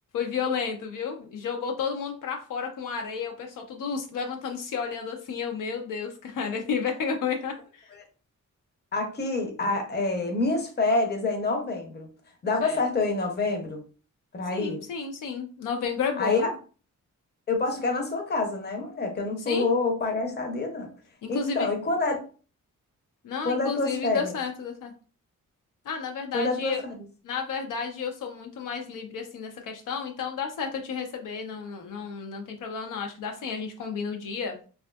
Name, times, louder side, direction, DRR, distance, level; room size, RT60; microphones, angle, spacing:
voice 1, 0.1-7.9 12.6-12.8 14.5-16.5 19.5-19.7 21.2-21.7 23.2-24.9 25.9-26.8 27.2-34.6, left 6 dB, 75° left, 4 dB, 0.5 m, -32 dB
voice 2, 8.9-12.1 12.4-13.8 14.3-14.9 16.2-16.4 17.5-20.9 21.3-22.2 23.4-24.3 26.3-26.9, left 3 dB, 30° left, 3 dB, 0.7 m, -27 dB
2.5 x 2.4 x 2.2 m, 0.38 s
cardioid pair, 85°, 32 cm